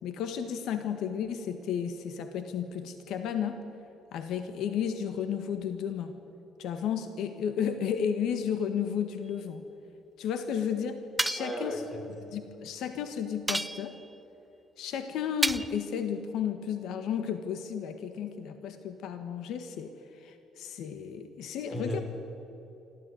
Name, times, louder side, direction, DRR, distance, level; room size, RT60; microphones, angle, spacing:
voice 1, 0.0-3.6 4.1-6.1 6.6-9.6 10.2-11.7 12.3-14.0 14.8-22.0, left 8 dB, 75° left, 8 dB, 1.5 m, -33 dB
sound 1, 11.2-11.6 13.5-14.1 15.4-15.9, right 1 dB, 5° right, 0.4 m, -31 dB
voice 2, 11.3-12.2 21.7-22.0, equal, 15° left, 3 dB, 3.7 m, -35 dB
25.0 x 14.5 x 9.5 m, 3.0 s
cardioid pair, 140°, 0 cm